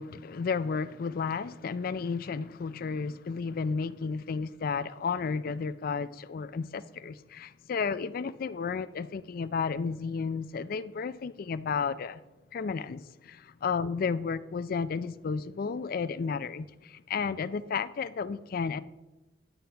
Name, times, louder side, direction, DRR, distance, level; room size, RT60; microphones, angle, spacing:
voice 1, 0.0-12.2 12.5-18.8, left 5 dB, 55° left, 0.4 m, -32 dB
9.8 x 9.6 x 3.4 m
head